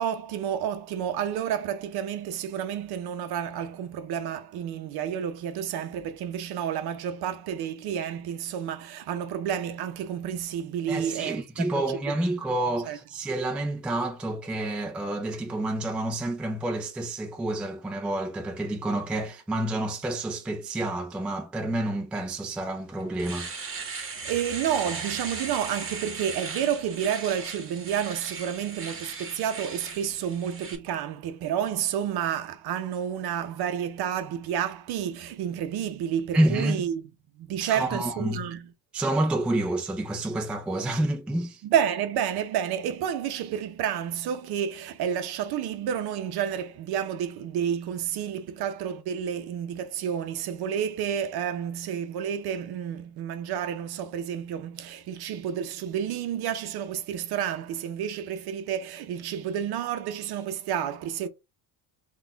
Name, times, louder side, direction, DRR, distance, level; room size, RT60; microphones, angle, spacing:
voice 1, 0.0-11.8 12.9-13.0 23.9-37.1 37.3-38.6 41.6-61.3, right 9 dB, 55° right, 0.7 m, -30 dB
voice 2, 10.9-23.5 36.3-36.8 37.6-38.5 38.9-41.6, right 1 dB, 5° right, 0.3 m, -29 dB
Domestic sounds home sounds, 22.5-22.6 23.0-30.8, right 5 dB, 30° right, 1.1 m, -37 dB
4.0 x 2.4 x 3.8 m
cardioid pair, 140°, 45 cm